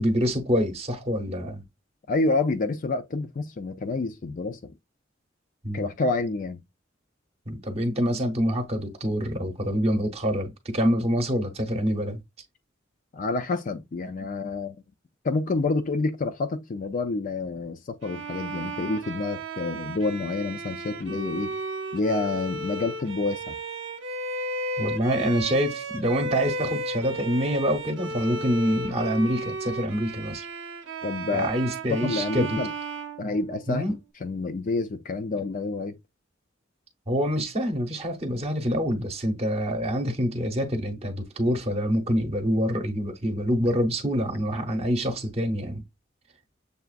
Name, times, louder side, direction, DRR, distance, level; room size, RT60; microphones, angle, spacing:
voice 1, 0.0-1.6 5.6-5.9 7.5-12.2 24.8-30.5 31.3-32.6 33.7-34.0 37.1-45.8, equal, 30° right, 0.8 m, -26 dB
voice 2, 2.1-4.7 5.7-6.6 13.1-14.8 15.2-21.6 21.9-23.6 31.0-31.5 31.9-32.7 33.2-36.0, left 3 dB, 45° left, 0.4 m, -28 dB
Bowed string instrument, 18.0-33.9, right 2 dB, 75° right, 0.7 m, -34 dB
6.8 x 2.4 x 2.4 m
head